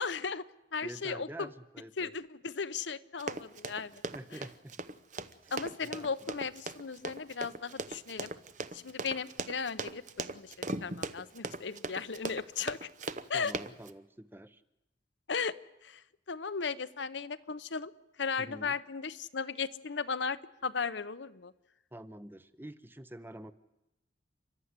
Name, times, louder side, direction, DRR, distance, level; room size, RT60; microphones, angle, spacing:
voice 1, 0.0-1.5 2.0-4.0 4.3-4.4 5.5-8.3 8.7-10.5 10.8-12.9 13.3-13.5 15.3-15.5 15.8-17.9 18.2-21.5, left 5 dB, 70° left, 13 dB, 0.8 m, -36 dB
voice 2, 0.8-2.1 4.1-4.7 5.4-6.1 13.3-14.6 18.4-18.8 21.9-23.5, right 1 dB, 10° right, 13 dB, 0.8 m, -47 dB
Run, 3.2-13.9, right 3 dB, 40° right, 0.8 m, -39 dB
30.0 x 13.0 x 9.6 m, 0.98 s
head